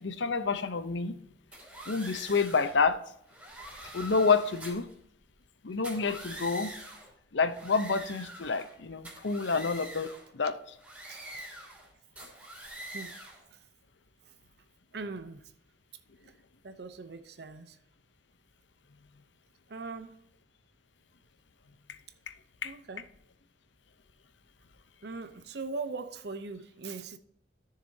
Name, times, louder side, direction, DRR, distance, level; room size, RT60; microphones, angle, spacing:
voice 1, 0.0-1.1 1.9-3.0 3.9-4.9 5.6-6.7 7.3-10.1 10.4-10.6 22.6-22.7, left 4 dB, 75° left, 0.7 m, -28 dB
sound 1, 1.5-2.7 3.3-4.9 5.7-7.1 7.5-8.7 9.0-10.3 10.8-11.9 12.2-13.4, right 1 dB, 10° right, 2.9 m, -45 dB
voice 2, 14.9-15.5 16.2-16.3 16.6-17.8 19.7-20.2 22.6-23.1 25.0-27.2, right 4 dB, 60° right, 0.6 m, -40 dB
13.5 x 6.7 x 2.7 m
head